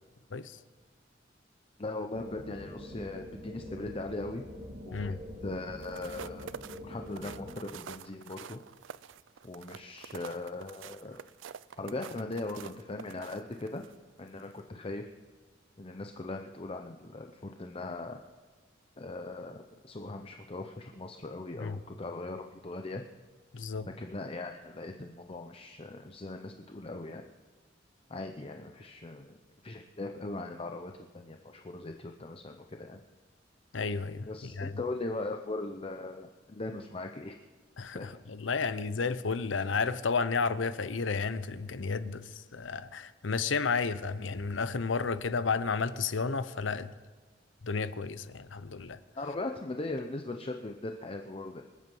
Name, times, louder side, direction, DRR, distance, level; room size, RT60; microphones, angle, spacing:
voice 1, 1.8-4.4 4.9-5.2 5.4-6.5 6.8-8.6 9.4-11.2 11.8-13.9 14.2-15.1 15.8-18.2 19.0-23.0 24.0-27.2 28.1-29.4 29.6-33.0 34.3-37.4 37.9-38.1 49.1-51.6, left 2 dB, 30° left, 0.7 m, -39 dB
sound 1, 2.1-7.6, left 1 dB, 40° right, 2.7 m, -45 dB
sound 2, 5.7-13.9 14.4-14.6, right 8 dB, 80° right, 0.4 m, -47 dB
voice 2, 23.5-23.9 33.7-34.8 37.8-46.9 47.6-49.0, left 4 dB, 85° left, 0.7 m, -32 dB
25.5 x 8.5 x 5.5 m
head